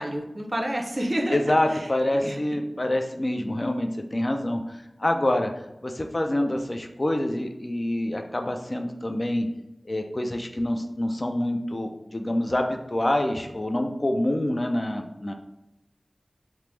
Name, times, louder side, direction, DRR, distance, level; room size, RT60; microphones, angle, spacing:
voice 1, 0.0-1.4 1.7-1.9 2.2-2.4, right 1 dB, 35° right, 2 dB, 0.5 m, -29 dB
voice 2, 1.3-5.5 5.8-9.5 9.9-15.3, left 1 dB, 40° left, 5 dB, 0.3 m, -26 dB
3.0 x 2.0 x 3.2 m, 0.89 s
wide cardioid pair, 60°, 0 cm